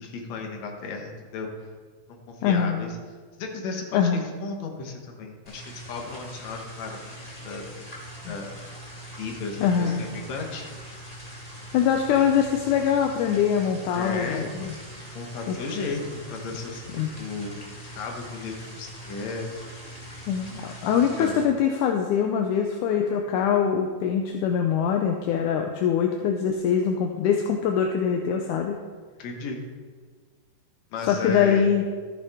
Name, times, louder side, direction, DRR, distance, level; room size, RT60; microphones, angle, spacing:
voice 1, 0.0-1.5 2.1-3.0 3.4-7.6 8.3-8.6 9.2-10.8 14.0-14.5 15.1-17.6 18.0-19.5 21.2-21.3 29.2-29.6 30.9-31.7, left 4 dB, 65° left, 2 dB, 2.3 m, -34 dB
voice 2, 2.4-2.9 3.9-4.2 8.3-8.4 9.6-10.0 11.7-14.7 15.5-15.6 16.9-17.1 20.3-28.8 31.1-31.8, left 7 dB, 80° left, 3 dB, 2.1 m, -23 dB
sound 1, 5.5-21.4, equal, 30° left, 0.6 m, -42 dB
14.0 x 7.7 x 3.6 m, 1.5 s
omnidirectional pair, 3.7 m